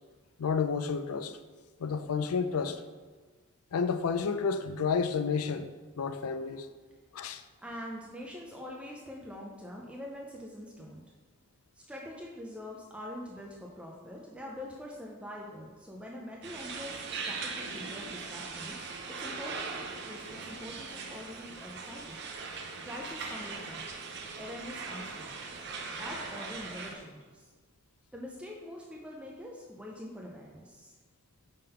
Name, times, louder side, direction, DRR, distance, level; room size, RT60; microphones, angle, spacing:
voice 1, 0.4-1.4 1.8-2.8 3.7-5.7 6.0-6.7 7.1-7.4, left 5 dB, 85° left, 0.4 m, -30 dB
voice 2, 7.6-11.0 11.8-18.9 19.2-19.8 20.1-23.9 24.4-25.5 25.9-27.5 28.1-30.9, left 1 dB, 5° right, 0.5 m, -44 dB
sound 1, 16.4-26.9, right 4 dB, 50° right, 0.7 m, -40 dB
5.4 x 3.7 x 5.5 m
head